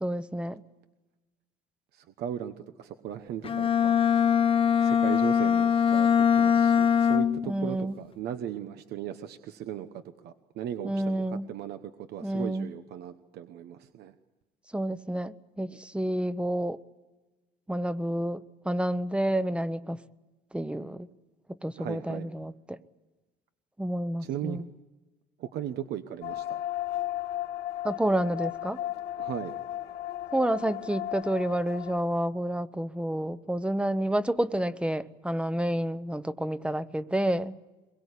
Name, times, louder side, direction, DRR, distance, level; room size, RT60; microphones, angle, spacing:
voice 1, 0.0-0.6 7.5-8.0 10.8-11.5 12.2-12.7 14.7-16.8 17.7-20.0 20.5-21.1 21.6-22.8 23.8-24.6 27.8-28.8 30.3-37.5, right 1 dB, 5° right, 14 dB, 0.9 m, -29 dB
voice 2, 1.9-3.9 4.8-9.9 10.2-11.8 12.1-14.1 21.8-22.3 24.2-24.6 25.4-26.6 29.2-29.5, right 10 dB, 75° right, 9 dB, 1.1 m, -37 dB
Bowed string instrument, 3.4-7.6, left 8 dB, 35° left, 1.0 m, -22 dB
sound 1, 26.2-32.0, left 13 dB, 75° left, 2.5 m, -35 dB
23.5 x 22.0 x 8.3 m, 1.2 s
cardioid pair, 110°, 17 cm